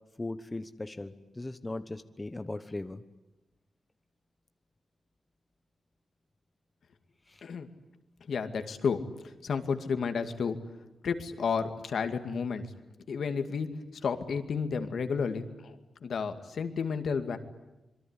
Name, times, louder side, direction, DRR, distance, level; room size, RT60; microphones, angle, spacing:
voice 1, 0.2-3.0 7.3-7.5, left 2 dB, 20° left, 10 dB, 1.1 m, -38 dB
voice 2, 8.3-10.6 11.0-12.6 13.1-13.7 14.0-17.4, left 5 dB, 70° left, 8 dB, 2.3 m, -32 dB
26.5 x 23.0 x 9.9 m, 1.0 s
wide cardioid pair, 115°, 0 cm